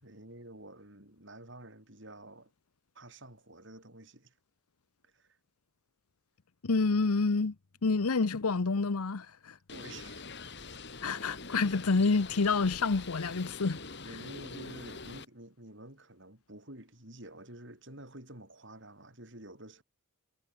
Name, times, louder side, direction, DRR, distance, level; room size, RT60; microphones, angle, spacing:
voice 1, 0.0-2.5 3.0-4.4 5.0-5.4 9.7-10.3 14.0-19.8, right 1 dB, 55° right, 6.8 m, -50 dB
voice 2, 6.6-7.5 7.8-9.6 11.0-13.8, left 4 dB, 85° left, 0.8 m, -28 dB
Bird, 9.7-15.3, left 4 dB, 50° left, 3.1 m, -44 dB
head